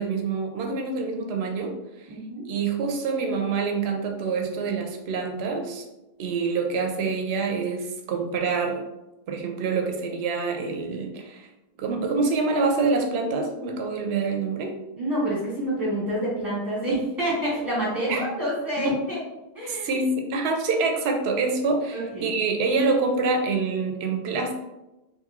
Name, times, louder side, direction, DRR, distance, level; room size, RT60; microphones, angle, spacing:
voice 1, 0.0-2.1 2.5-5.8 6.2-8.8 9.3-11.5 11.8-14.8 18.1-18.2 18.8-19.0 19.7-24.5, right 4 dB, 90° right, 3 dB, 0.8 m, -26 dB
voice 2, 2.1-2.4 14.9-19.2 19.5-20.0 21.9-22.3, right 1 dB, 20° right, -7 dB, 1.3 m, -28 dB
2.9 x 2.6 x 2.4 m, 0.98 s
omnidirectional pair, 1.0 m